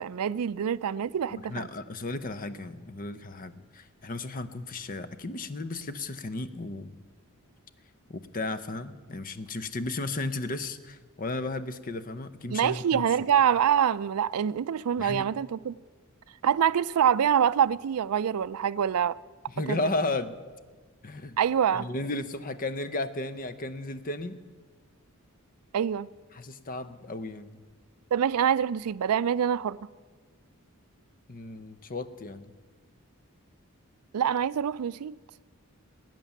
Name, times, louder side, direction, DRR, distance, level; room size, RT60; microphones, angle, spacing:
voice 1, 0.0-1.7 12.5-15.7 16.4-19.2 19.7-19.8 21.4-21.9 25.7-26.1 28.1-29.8 34.1-35.2, right 8 dB, 85° right, 0.4 m, -25 dB
voice 2, 1.3-7.0 8.1-13.0 15.0-15.2 19.5-20.4 21.0-21.4 21.7-24.4 26.3-27.6 31.3-32.5, left 2 dB, 40° left, 0.7 m, -34 dB
19.5 x 9.0 x 7.2 m
head